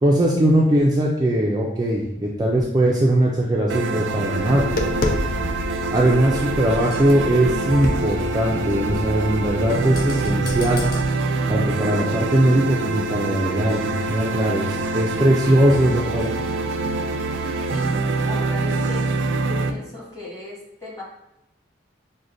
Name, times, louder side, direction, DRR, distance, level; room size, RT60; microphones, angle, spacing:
voice 1, 0.0-4.6 5.9-10.8 11.5-16.3, right 1 dB, 20° right, -3 dB, 0.3 m, -20 dB
sound 1, 3.7-19.7, right 3 dB, 90° right, 0.4 m, -25 dB
Tap, 4.4-11.0, left 1 dB, 50° left, 0.4 m, -30 dB
voice 2, 17.7-19.0 19.5-21.0, left 2 dB, 15° left, -6 dB, 1.2 m, -37 dB
6.2 x 2.1 x 2.6 m, 0.85 s
head